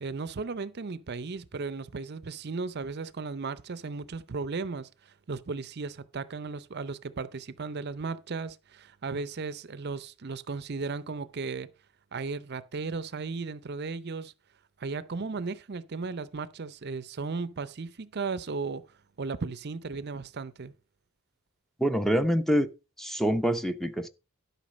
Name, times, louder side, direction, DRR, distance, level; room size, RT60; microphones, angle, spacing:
voice 1, 0.0-11.7 12.1-14.3 14.8-18.8 19.2-20.7, right 4 dB, 45° right, 0.6 m, -35 dB
voice 2, 21.8-22.7 23.0-24.1, equal, ahead, 0.6 m, -25 dB
12.0 x 5.7 x 5.1 m
head